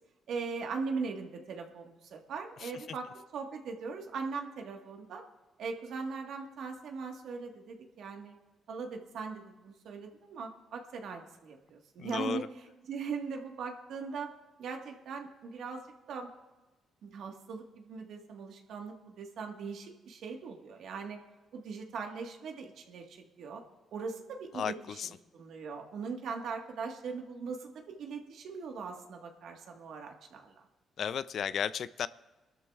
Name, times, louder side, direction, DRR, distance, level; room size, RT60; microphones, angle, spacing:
voice 1, 0.3-3.1 3.3-5.2 5.6-8.3 8.7-12.4 12.9-14.3 14.6-16.3 17.0-21.2 21.5-23.6 23.9-25.0 25.3-30.5, right 5 dB, 75° right, 2 dB, 1.5 m, -40 dB
voice 2, 12.0-12.5 24.5-25.1 31.0-32.1, left 8 dB, 60° left, 16 dB, 0.4 m, -34 dB
22.5 x 12.5 x 2.4 m, 1.1 s
cardioid pair, 90°, 0 cm